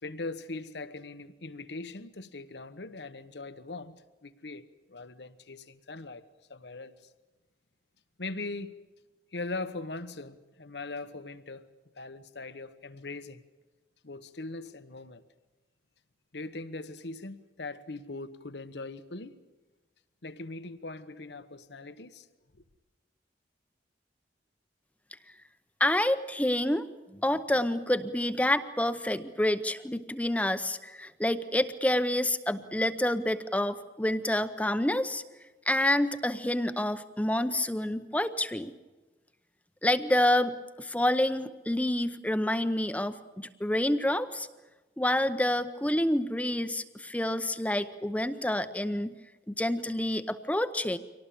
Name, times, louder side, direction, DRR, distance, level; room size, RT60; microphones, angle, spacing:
voice 1, 0.0-6.2 6.5-6.9 8.2-8.8 9.3-11.7 12.0-13.4 14.0-15.2 16.3-19.3 20.2-22.3, left 3 dB, 80° left, 1.2 m, -40 dB
voice 2, 25.8-26.9 27.1-35.2 35.7-38.7 39.8-44.5 45.0-49.1 49.5-51.0, left 1 dB, 10° left, 0.7 m, -28 dB
24.5 x 18.5 x 8.5 m
head